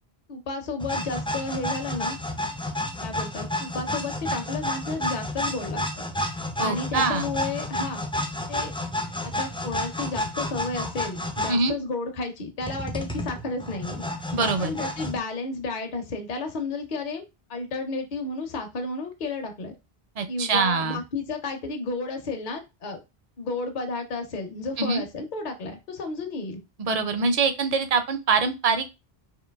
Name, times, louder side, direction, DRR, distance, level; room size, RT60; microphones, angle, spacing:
voice 1, 0.3-2.2 3.0-6.0 6.6-8.1 8.5-8.7 9.2-14.0 14.6-17.2 17.5-19.7 20.3-23.0 23.4-26.6, left 3 dB, 50° left, 4 dB, 0.8 m, -32 dB
sound 1, 0.8-11.6 12.6-15.2, left 1 dB, 10° left, 0.3 m, -31 dB
voice 2, 6.6-7.3 11.5-11.7 14.3-14.7 20.2-21.0 24.8-25.0 26.8-29.0, right 4 dB, 45° right, 9 dB, 0.6 m, -24 dB
3.9 x 2.6 x 3.4 m, 0.25 s
omnidirectional pair, 1.0 m